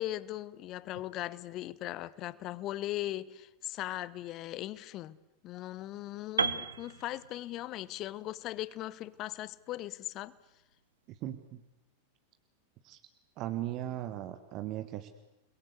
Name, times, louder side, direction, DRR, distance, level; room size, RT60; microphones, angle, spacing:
voice 1, 0.0-5.2 5.4-10.3, left 15 dB, 35° left, 0.9 m, -39 dB
Piano, 6.4-10.3, right 5 dB, 75° right, 1.2 m, -37 dB
voice 2, 11.1-11.6 12.8-13.0 13.4-15.1, right 13 dB, 40° right, 1.6 m, -38 dB
29.5 x 22.0 x 8.2 m
figure-of-eight pair, 90°, 0 cm